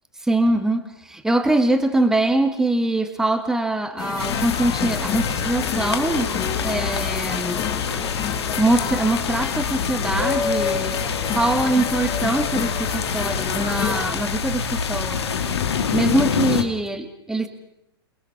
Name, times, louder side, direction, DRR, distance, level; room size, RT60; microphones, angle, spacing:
voice 1, 0.2-6.3 6.6-7.7 8.6-11.0 11.3-15.3 15.9-17.5, right 2 dB, 5° right, 7 dB, 2.1 m, -23 dB
sound 1, 4.0-14.1, left 7 dB, 25° left, 2.2 m, -29 dB
sound 2, 4.2-16.6, left 6 dB, 85° left, 2.7 m, -26 dB
28.5 x 21.0 x 6.1 m, 0.79 s
hypercardioid pair, 140°, 13 cm